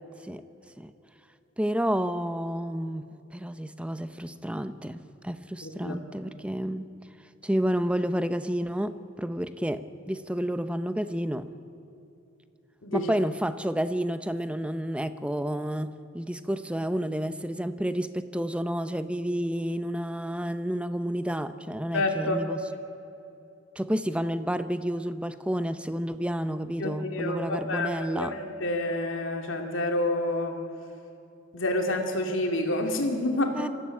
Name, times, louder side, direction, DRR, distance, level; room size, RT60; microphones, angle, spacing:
voice 1, 1.6-6.8 7.4-11.5 12.9-22.6 23.8-28.3 33.5-33.7, equal, 5° right, 11 dB, 0.7 m, -30 dB
voice 2, 5.6-5.9 12.8-13.1 21.9-22.4 26.8-30.6 31.5-33.5, left 1 dB, 85° left, 3 dB, 2.7 m, -28 dB
24.5 x 15.0 x 8.7 m, 2.8 s
head